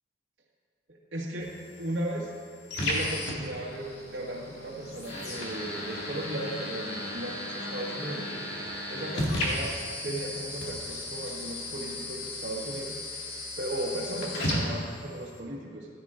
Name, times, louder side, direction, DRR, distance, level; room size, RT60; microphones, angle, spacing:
voice 1, 0.9-2.3 2.8-8.3 8.9-9.8 10.0-13.0 13.6-15.9, right 1 dB, 85° right, -4 dB, 1.9 m, -36 dB
sound 1, 1.4-15.4, left 1 dB, 65° left, 2.2 m, -35 dB
15.5 x 11.5 x 2.6 m, 2.2 s
head